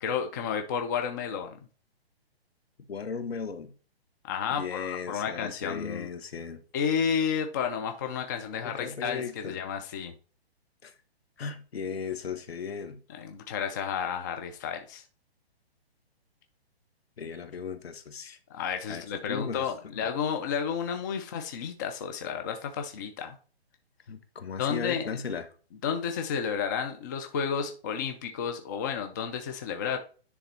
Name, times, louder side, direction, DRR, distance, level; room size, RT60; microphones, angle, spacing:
voice 1, 0.0-1.6 4.2-6.1 6.7-10.1 13.1-15.0 18.5-23.4 24.6-25.2 25.8-30.0, left 7 dB, 20° left, 0.5 m, -31 dB
voice 2, 2.9-3.7 4.6-6.6 8.5-9.6 10.8-10.9 11.4-13.0 17.2-18.4 18.9-19.0 19.3-19.6 19.9-20.1 24.1-25.5, left 6 dB, 70° left, 1.5 m, -36 dB
10.0 x 3.5 x 4.2 m
hypercardioid pair, 150°, 32 cm